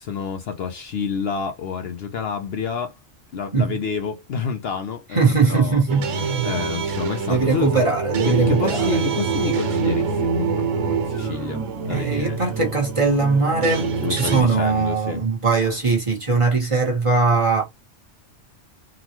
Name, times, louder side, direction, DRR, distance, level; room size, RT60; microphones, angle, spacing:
voice 1, 0.0-2.9 3.3-5.8 6.4-7.8 8.2-12.4 13.8-15.2, left 6 dB, 60° left, 0.8 m, -29 dB
voice 2, 5.1-6.0 7.3-8.9 11.9-17.6, right 4 dB, 30° right, 1.1 m, -20 dB
sound 1, 5.9-14.4, right 5 dB, 90° right, 1.1 m, -25 dB
3.8 x 2.3 x 2.9 m
omnidirectional pair, 1.2 m